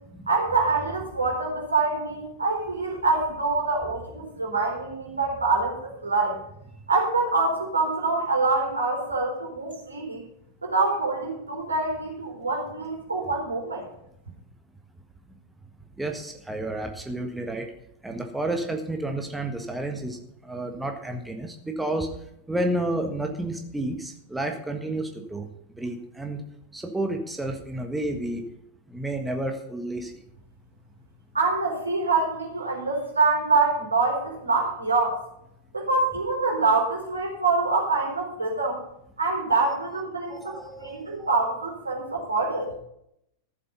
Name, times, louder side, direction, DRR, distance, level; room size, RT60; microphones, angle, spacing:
voice 1, 0.3-6.4 6.9-10.2 10.6-13.8 31.3-35.2 35.7-38.8 39.2-42.7, right 3 dB, 80° right, -1 dB, 4.2 m, -25 dB
voice 2, 16.0-17.6 18.0-20.2 20.4-22.1 22.5-25.5 25.8-26.4 26.7-28.4 28.9-30.1 39.5-39.8 40.3-41.3, right 1 dB, 5° right, 3 dB, 1.5 m, -31 dB
14.0 x 7.7 x 5.5 m, 0.77 s
figure-of-eight pair, 90°, 0 cm